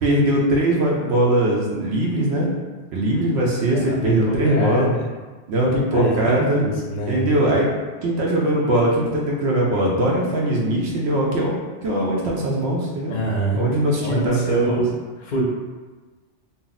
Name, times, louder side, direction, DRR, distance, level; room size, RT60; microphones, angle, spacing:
voice 1, 0.0-2.5 2.9-4.9 5.5-6.6 7.1-7.7 8.0-11.5 11.8-13.2 13.5-14.8, right 1 dB, 75° right, -3 dB, 0.8 m, -20 dB
voice 2, 3.7-5.0 5.9-7.3 13.1-13.6 14.0-14.9 15.2-15.4, right 1 dB, 50° left, -3 dB, 0.6 m, -25 dB
2.6 x 2.0 x 3.9 m, 1.3 s
omnidirectional pair, 1.1 m